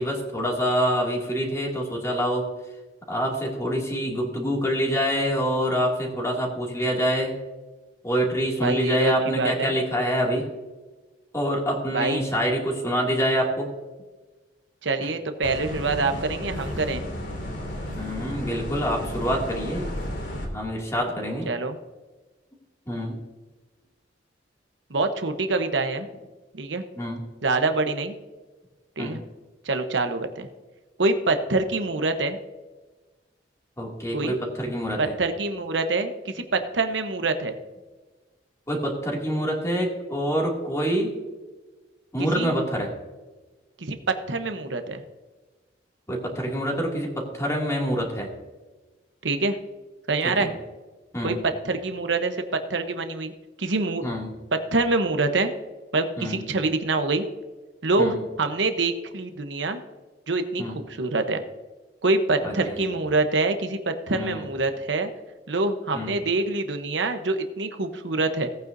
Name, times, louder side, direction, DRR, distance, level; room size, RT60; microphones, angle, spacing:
voice 1, 0.0-2.5 3.1-7.3 8.0-10.4 11.3-13.7 15.0-15.1 17.9-19.9 20.5-21.5 22.9-23.2 27.0-27.2 29.0-29.2 33.8-35.1 38.7-41.1 42.1-42.9 46.1-48.3 50.2-50.5 51.1-51.4 54.0-54.3 56.2-56.5 58.0-58.2 60.6-60.8 62.4-62.9 64.1-64.5 65.9-66.2, equal, 15° left, -2 dB, 2.4 m, -26 dB
voice 2, 8.6-9.8 11.9-12.2 14.8-17.0 21.5-21.8 24.9-26.1 26.5-26.8 27.4-28.1 29.0-29.2 29.6-30.5 31.0-32.4 34.1-34.4 35.0-37.6 42.3-42.6 43.8-45.0 49.2-49.6 50.1-50.5 51.2-51.3 51.6-52.4 52.7-53.3 53.6-54.0 54.7-55.5 55.9-57.3 57.8-59.8 60.3-61.4 62.0-65.1 65.5-68.5, right 3 dB, 80° right, 7 dB, 1.0 m, -25 dB
sound 1, 15.4-20.5, equal, 85° left, 2.9 m, -33 dB
17.5 x 9.2 x 2.7 m, 1.3 s
head